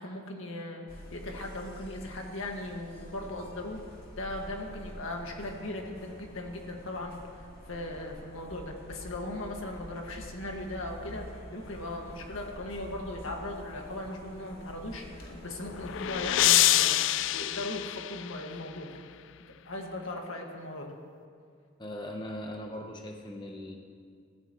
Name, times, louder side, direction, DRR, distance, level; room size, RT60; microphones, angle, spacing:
voice 1, 0.0-19.0 19.7-20.9, left 1 dB, 80° left, 1 dB, 1.9 m, -38 dB
sound 1, 0.9-16.4, equal, 45° left, 2.3 m, -47 dB
sound 2, 15.3-18.7, left 14 dB, 65° left, 0.3 m, -26 dB
voice 2, 21.8-23.8, left 1 dB, 20° left, 2 dB, 1.0 m, -39 dB
22.0 x 15.0 x 3.1 m, 2.2 s
head